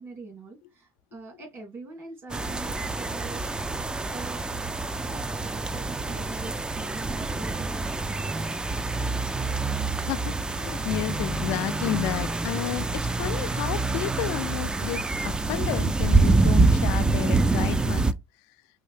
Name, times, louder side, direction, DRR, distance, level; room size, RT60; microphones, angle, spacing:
voice 1, 0.0-3.4 4.0-9.5, right 3 dB, 45° right, 2.8 m, -43 dB
sound 1, 2.3-18.1, right 3 dB, 15° right, 0.4 m, -26 dB
voice 2, 10.0-18.1, left 15 dB, 90° left, 0.3 m, -32 dB
5.5 x 2.7 x 3.2 m
cardioid pair, 105°, 6 cm